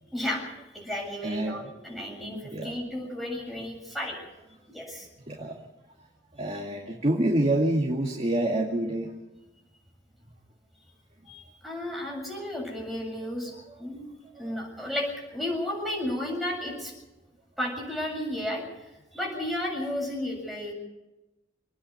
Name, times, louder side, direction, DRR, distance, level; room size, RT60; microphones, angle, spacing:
voice 1, 0.1-4.2 4.7-5.1 11.3-13.5 13.8-14.1 14.4-16.9 17.6-18.6 19.1-20.7, left 1 dB, ahead, -2 dB, 7.4 m, -33 dB
voice 2, 1.2-1.7 2.5-2.7 5.3-5.6 6.4-9.1 14.4-14.6, right 1 dB, 35° right, 0 dB, 2.3 m, -27 dB
27.5 x 9.9 x 9.9 m, 1.0 s
head